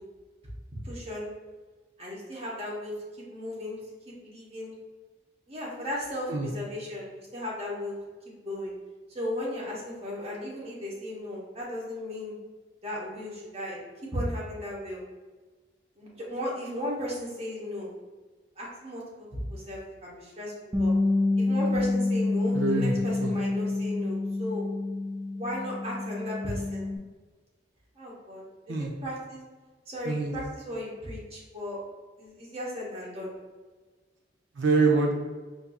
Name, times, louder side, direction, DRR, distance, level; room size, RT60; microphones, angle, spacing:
voice 1, 0.8-1.3 2.0-2.9 3.3-3.8 4.1-4.7 5.5-7.9 8.4-8.7 9.1-12.4 12.8-13.8 14.1-15.0 16.0-17.9 18.6-20.5 20.8-20.9 21.4-24.6 25.3-26.9 28.0-28.4 29.0-29.4 29.9-31.8 32.2-33.3, left 1 dB, 35° right, -4 dB, 0.9 m, -35 dB
Bass guitar, 20.7-27.0, left 2 dB, 20° right, 0.3 m, -28 dB
voice 2, 22.5-23.3 28.7-28.9 30.0-30.3 34.6-35.1, right 3 dB, 85° right, 0 dB, 0.5 m, -25 dB
4.5 x 2.6 x 2.3 m, 1.3 s
head